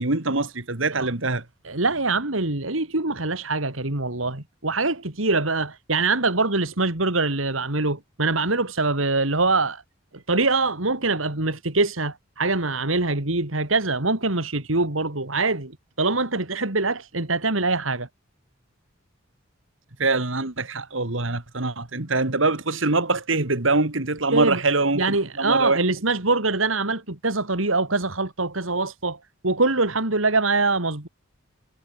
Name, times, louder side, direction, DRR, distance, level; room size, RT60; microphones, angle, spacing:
voice 1, 0.0-1.4 20.0-25.8, right 3 dB, 70° right, 2.5 m, -24 dB
voice 2, 1.6-9.8 10.1-15.7 16.0-18.1 24.3-24.6 24.9-29.2 29.4-31.1, right 3 dB, 90° right, 3.3 m, -24 dB
head